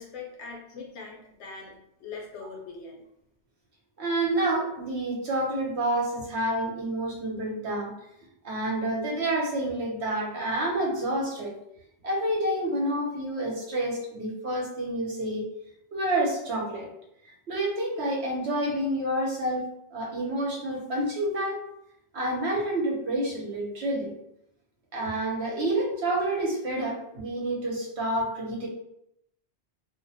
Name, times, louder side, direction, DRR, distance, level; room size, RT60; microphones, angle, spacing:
voice 1, 0.0-1.7 2.0-3.0, left 4 dB, 85° left, 0 dB, 1.0 m, -41 dB
voice 2, 4.0-7.9 8.4-11.5 12.0-15.5 15.9-16.9 17.5-21.6 22.1-24.1 24.9-28.7, right 1 dB, 75° right, -2 dB, 1.0 m, -28 dB
2.4 x 2.1 x 2.7 m, 0.77 s
omnidirectional pair, 1.1 m